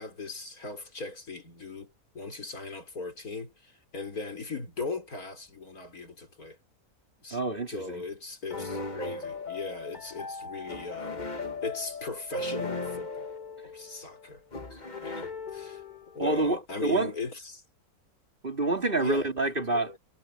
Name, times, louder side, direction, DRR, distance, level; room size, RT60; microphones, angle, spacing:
voice 1, 0.0-6.6 7.2-7.4 7.7-11.3 11.6-13.3 13.6-14.4 14.7-15.8 16.1-17.6 19.0-19.4 19.7-20.0, left 3 dB, 70° left, 5.2 m, -39 dB
voice 2, 7.3-8.0 16.2-17.1 18.4-20.0, right 2 dB, 35° right, 3.5 m, -27 dB
sound 1, 8.5-16.2, left 3 dB, 30° left, 1.5 m, -37 dB
omnidirectional pair, 1.6 m